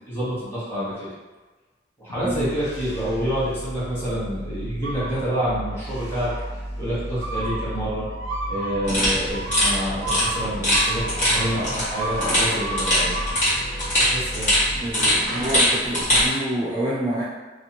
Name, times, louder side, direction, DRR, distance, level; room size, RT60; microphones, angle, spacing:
voice 1, 0.1-1.1 2.0-6.3 6.8-8.0 8.5-13.2 14.1-14.5, equal, 15° left, -11 dB, 1.1 m, -28 dB
sound 1, 2.1-14.9, equal, 70° left, 0.6 m, -35 dB
voice 2, 2.2-2.6 14.7-17.2, right 1 dB, 15° right, -9 dB, 0.3 m, -27 dB
sound 2, 4.8-5.6 6.0-6.5 7.2-13.5, right 2 dB, 80° right, 0.4 m, -32 dB
sound 3, 8.8-16.3, equal, 40° left, 1.3 m, -22 dB
2.6 x 2.3 x 2.8 m, 1.3 s
head